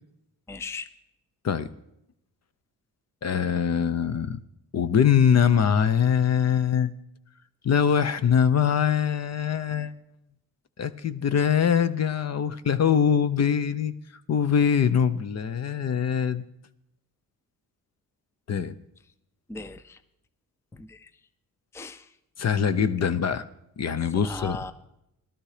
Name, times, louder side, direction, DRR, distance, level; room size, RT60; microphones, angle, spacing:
voice 1, 0.5-0.9 19.5-20.0 20.7-21.1 21.7-22.1 24.2-24.7, left 3 dB, 5° left, 12 dB, 0.5 m, -38 dB
voice 2, 3.2-4.4 4.7-6.9 7.6-9.9 10.8-16.4 18.5-18.8 22.4-23.5 23.8-24.6, left 7 dB, 45° left, 14 dB, 0.7 m, -23 dB
17.0 x 12.5 x 4.9 m, 0.81 s
wide cardioid pair, 170°, 36 cm